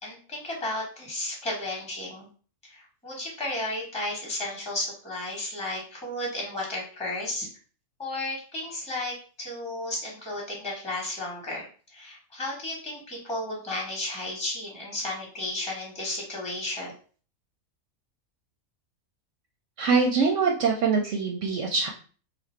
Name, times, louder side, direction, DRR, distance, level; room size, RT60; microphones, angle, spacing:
voice 1, 0.0-2.3 2.6-7.5 8.0-16.9, left 1 dB, 5° left, -2 dB, 1.0 m, -33 dB
voice 2, 19.8-21.9, right 5 dB, 70° right, 1 dB, 0.8 m, -23 dB
2.8 x 2.5 x 4.3 m, 0.40 s
omnidirectional pair, 1.5 m